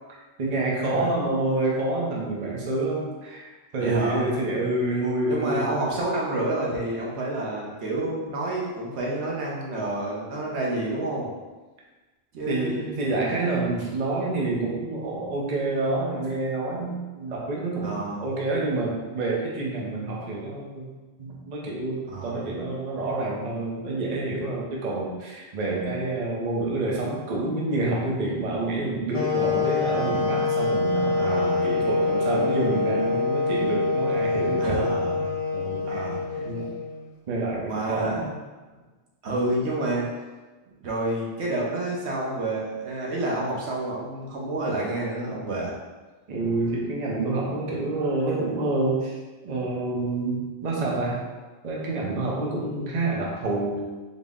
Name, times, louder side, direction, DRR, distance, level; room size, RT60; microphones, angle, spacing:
voice 1, 0.4-5.7 12.5-20.9 21.2-34.9 35.5-36.0 36.4-36.7 37.3-38.3 46.3-49.2 49.4-51.3 51.6-53.8, right 2 dB, 45° right, -3 dB, 0.7 m, -28 dB
voice 2, 3.8-4.3 5.3-11.3 12.3-12.9 17.8-18.3 22.1-22.4 31.1-31.7 34.2-35.4 35.9-36.2 37.7-38.2 39.2-40.0 40.8-45.7, right 2 dB, 80° right, -4 dB, 1.1 m, -29 dB
sound 1, 29.1-37.1, left 4 dB, 45° left, 0.5 m, -25 dB
4.0 x 2.0 x 3.5 m, 1.2 s
omnidirectional pair, 1.1 m